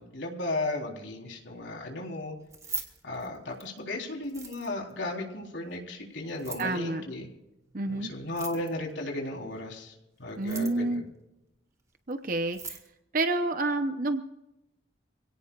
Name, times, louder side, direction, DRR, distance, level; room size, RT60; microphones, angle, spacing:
voice 1, 0.0-2.4 3.0-7.3 7.9-9.9 10.2-11.0, left 2 dB, 75° left, 0 dB, 3.8 m, -35 dB
Keys jangling, 2.4-3.8 4.2-4.9 6.3-6.8 8.2-8.9 10.3-10.9 12.1-12.2 12.4-12.9, right 4 dB, 15° right, 1.8 m, -40 dB
voice 2, 6.6-7.0 7.7-8.1 10.4-11.0 12.1-12.8 13.1-14.2, right 2 dB, 45° right, 7 dB, 0.8 m, -29 dB
26.5 x 17.5 x 2.4 m, 0.91 s
head